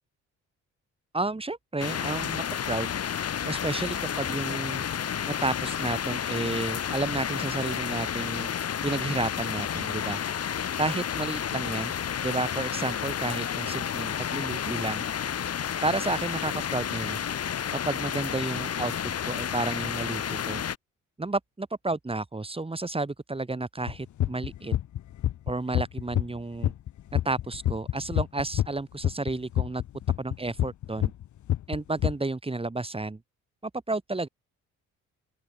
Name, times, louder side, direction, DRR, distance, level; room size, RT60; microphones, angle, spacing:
voice 1, 1.1-2.9 3.4-4.8 5.3-8.5 8.8-10.2 10.8-11.9 12.2-15.0 15.8-17.2 17.7-18.9 19.3-20.6 21.2-24.7 25.5-26.7 27.2-29.8 30.2-31.1 31.7-33.2 33.6-34.3, right 2 dB, 20° right, 7.4 m, -31 dB
sound 1, 1.8-20.8, left 8 dB, 55° left, 3.3 m, -31 dB
sound 2, 23.9-26.4 26.6-28.7 29.0-31.2 31.5-32.1, left 12 dB, 75° left, 3.6 m, -26 dB
open air
cardioid pair, 90°, 30 cm